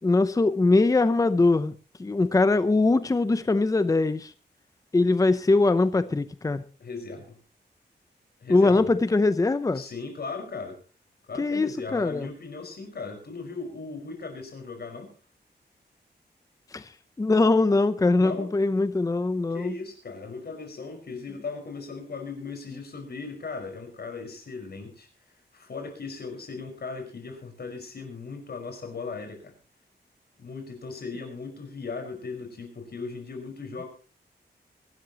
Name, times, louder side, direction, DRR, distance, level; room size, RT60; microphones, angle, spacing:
voice 1, 0.0-1.7 2.0-4.3 4.9-6.6 8.5-9.8 11.4-12.3 16.7-16.8 17.2-19.7, left 3 dB, 20° left, 0.6 m, -22 dB
voice 2, 6.8-7.3 8.4-8.9 9.7-10.8 11.3-15.1 18.2-18.5 19.5-25.1 25.5-29.5 30.4-33.8, left 4 dB, 65° left, 5.1 m, -37 dB
24.5 x 12.5 x 3.0 m
wide cardioid pair, 175°, 18 cm